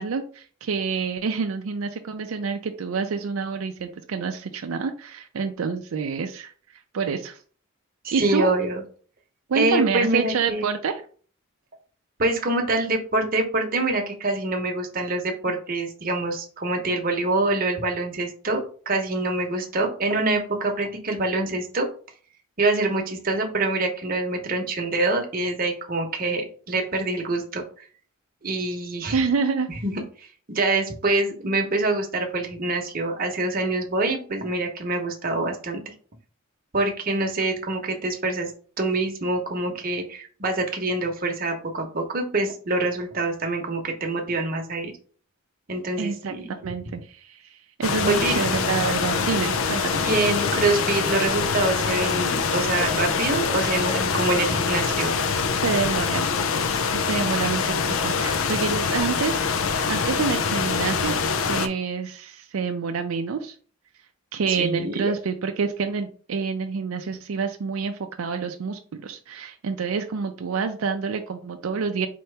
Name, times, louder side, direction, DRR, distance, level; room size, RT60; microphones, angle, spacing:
voice 1, 0.0-6.5 6.9-7.4 8.1-8.5 9.5-11.0 29.1-29.7 46.0-50.0 55.6-56.3 56.9-61.2 61.5-63.5 64.3-72.1, right 5 dB, 80° right, 6 dB, 0.4 m, -27 dB
voice 2, 8.0-8.8 9.5-10.7 12.2-21.9 22.6-27.6 28.4-29.2 29.8-29.9 30.2-35.8 36.7-38.5 38.8-44.9 45.7-46.6 48.1-48.4 49.9-55.2 64.6-65.1, right 2 dB, 45° right, 2 dB, 0.9 m, -25 dB
sound 1, 47.8-61.7, left 5 dB, 70° left, 0.5 m, -24 dB
4.4 x 2.8 x 3.3 m, 0.43 s
head